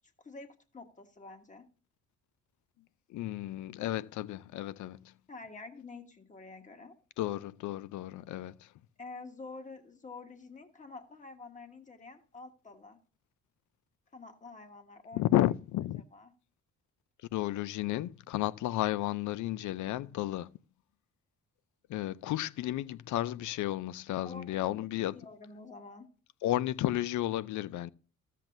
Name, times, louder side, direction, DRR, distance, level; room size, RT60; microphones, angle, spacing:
voice 1, 0.2-1.6 5.3-6.9 9.0-13.0 14.1-15.3 16.1-16.3 24.2-26.1, left 3 dB, 25° left, 1.5 m, -48 dB
voice 2, 3.1-5.1 7.2-8.7 15.1-16.0 17.3-20.5 21.9-25.2 26.4-27.9, left 14 dB, 75° left, 0.5 m, -32 dB
13.5 x 7.5 x 2.6 m
cardioid pair, 90°, 30 cm